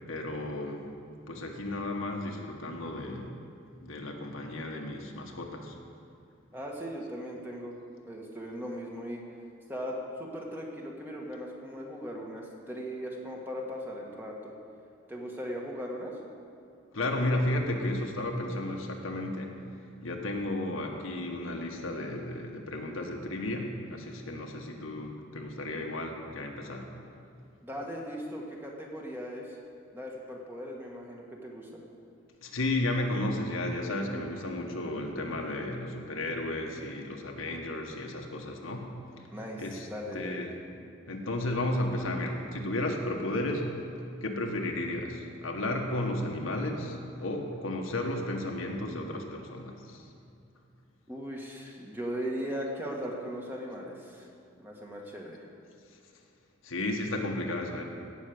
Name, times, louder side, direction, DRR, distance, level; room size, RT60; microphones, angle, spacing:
voice 1, 0.1-0.9 1.3-3.3 3.8-5.7 16.9-19.6 20.0-26.9 32.4-38.9 39.6-39.9 40.1-40.5 41.1-43.7 44.2-50.1 56.6-57.8, left 1 dB, 85° left, 1 dB, 1.6 m, -33 dB
voice 2, 6.5-7.8 8.0-9.2 9.7-14.5 15.1-16.2 27.6-29.6 29.9-31.8 39.3-40.5 51.1-54.3 54.6-55.4, equal, 10° right, -1 dB, 1.6 m, -38 dB
17.0 x 6.3 x 7.9 m, 2.4 s
head